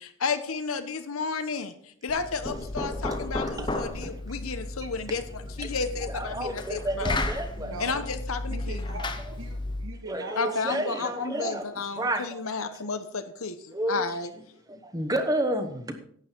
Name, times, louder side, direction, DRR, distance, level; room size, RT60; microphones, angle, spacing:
voice 1, 0.0-1.7 2.0-7.2 7.8-8.8 10.4-14.3, left 4 dB, 85° left, 9 dB, 0.9 m, -32 dB
Knock, 2.1-10.0, left 2 dB, 20° left, 0.8 m, -33 dB
voice 2, 3.0-4.2 5.6-5.7 6.0-7.7 10.0-11.6 12.0-12.8 13.7-14.0 14.7-15.9, right 1 dB, 15° right, 7 dB, 1.0 m, -31 dB
voice 3, 7.6-8.2 8.5-11.1 11.4-11.5, right 2 dB, 75° right, 2 dB, 1.2 m, -40 dB
11.5 x 8.6 x 4.5 m, 0.62 s
head